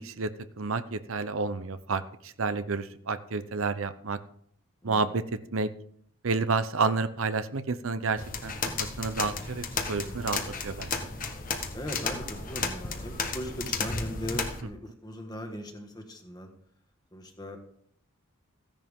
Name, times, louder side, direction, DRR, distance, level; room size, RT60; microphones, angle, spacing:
voice 1, 0.0-4.2 4.8-5.2 5.5-5.7 6.2-8.5 8.8-11.1, right 4 dB, 75° right, 12 dB, 0.8 m, -30 dB
sound 1, 8.2-14.6, left 4 dB, 40° left, 1.3 m, -33 dB
voice 2, 10.0-10.3 11.7-16.5 17.1-17.6, equal, 20° left, 4 dB, 1.7 m, -39 dB
15.5 x 10.5 x 3.7 m, 0.64 s
head